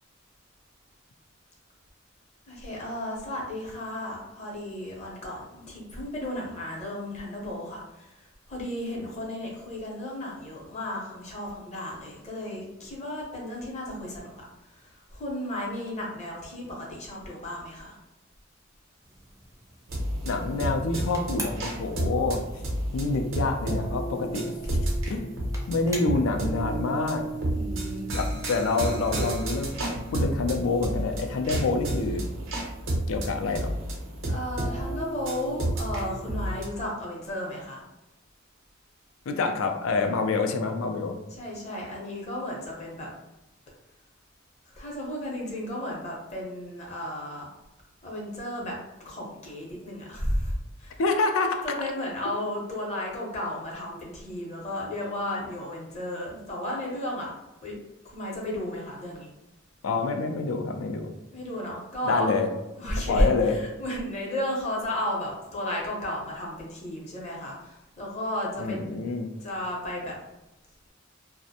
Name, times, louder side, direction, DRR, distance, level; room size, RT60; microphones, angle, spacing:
voice 1, 2.5-14.3 14.7-17.9 27.5-28.1 34.3-37.8 41.4-43.1 44.8-47.5 48.0-48.8 49.0-51.0 51.6-57.3 57.6-57.8 58.0-59.3 61.3-62.4 62.8-68.8 69.4-70.2, left 1 dB, 35° left, -3 dB, 0.7 m, -33 dB
sound 1, 19.0-31.0, right 1 dB, 15° right, 0.4 m, -47 dB
sound 2, 19.9-36.6, right 1 dB, 75° right, 0.7 m, -31 dB
voice 2, 20.2-22.4 22.9-24.5 25.1-25.3 25.7-27.2 28.1-32.3 33.1-33.7 39.3-41.2 51.0-51.6 59.8-61.1 62.0-62.5 63.1-63.6 68.6-69.3, left 3 dB, 85° left, 5 dB, 0.4 m, -27 dB
2.4 x 2.1 x 2.7 m, 0.95 s
head